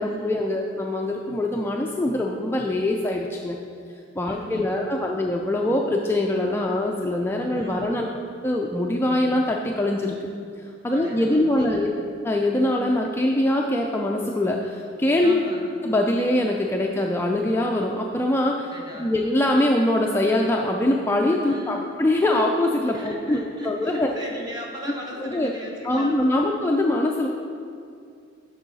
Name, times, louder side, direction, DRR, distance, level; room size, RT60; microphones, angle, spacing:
voice 1, 0.0-3.6 4.1-8.1 8.4-10.2 10.6-11.9 12.2-15.4 15.8-18.7 19.0-24.1 25.2-25.5 25.8-27.3, left 1 dB, 15° left, 0 dB, 0.3 m, -23 dB
voice 2, 4.2-4.9 7.5-8.0 10.9-12.0 15.2-15.7 18.6-19.2 21.5-21.9 22.9-26.5, equal, 20° right, -2 dB, 1.1 m, -38 dB
8.4 x 6.2 x 4.1 m, 2.3 s
head